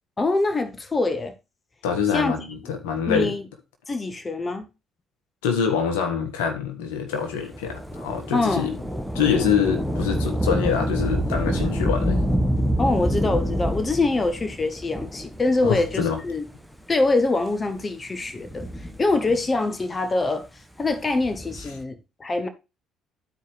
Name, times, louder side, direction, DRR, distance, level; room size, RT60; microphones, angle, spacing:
voice 1, 0.2-1.3 2.1-2.4 3.1-3.4 3.9-4.6 8.3-8.7 12.8-16.4 16.9-18.7 19.0-20.5 20.8-22.5, left 2 dB, 30° left, 1.1 m, -24 dB
voice 2, 1.8-3.3 5.4-8.7 9.1-12.2 15.6-16.2, left 7 dB, 80° left, 1.4 m, -25 dB
Thunder / Rain, 7.5-16.5 17.2-17.3 18.3-19.5 21.1-21.8, equal, 5° left, 1.1 m, -27 dB
12.0 x 4.7 x 3.2 m
hypercardioid pair, 55°, 0 cm